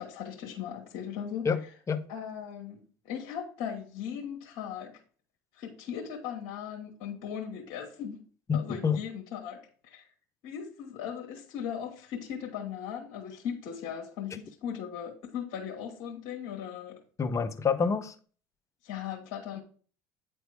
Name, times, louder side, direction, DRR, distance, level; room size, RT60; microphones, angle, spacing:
voice 1, 0.0-1.5 2.1-5.0 5.5-8.2 8.5-10.1 10.4-17.0 18.8-19.6, left 8 dB, 70° left, 1.3 m, -38 dB
voice 2, 8.5-9.0 17.2-18.1, left 6 dB, 30° left, 0.8 m, -27 dB
9.2 x 3.5 x 4.7 m
hypercardioid pair, 80°, 10 cm